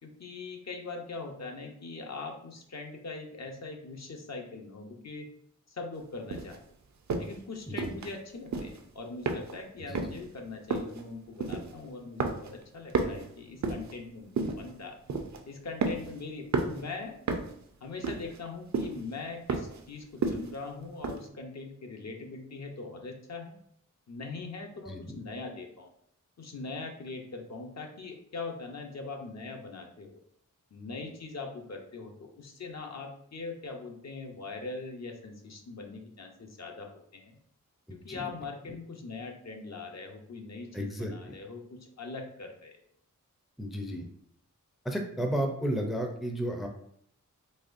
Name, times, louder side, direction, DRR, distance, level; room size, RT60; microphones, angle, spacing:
voice 1, 0.0-5.3 5.7-6.6 7.2-15.0 15.4-17.1 17.8-23.6 24.1-25.9 26.4-30.2 30.7-37.4 37.9-42.7, left 3 dB, 55° left, 2 dB, 0.7 m, -41 dB
sound 1, 6.3-6.6 7.1-7.4 7.8-8.1 8.5-8.8 9.3-9.7 10.0-10.2 10.7-11.0 11.4-11.9 12.2-12.6 12.9-13.9 14.4-14.7 15.1-15.4 15.8-16.2 16.5-16.8 17.3-17.6 18.0-18.5 18.7-19.0 19.5-19.8 20.2-20.6 21.0-21.2, right 4 dB, 60° right, 0.5 m, -31 dB
voice 2, 24.9-25.2 37.9-38.3 40.7-41.4 43.6-44.1 44.8-46.7, equal, ahead, 3 dB, 0.4 m, -33 dB
4.1 x 2.9 x 2.5 m, 0.68 s
wide cardioid pair, 90°, 32 cm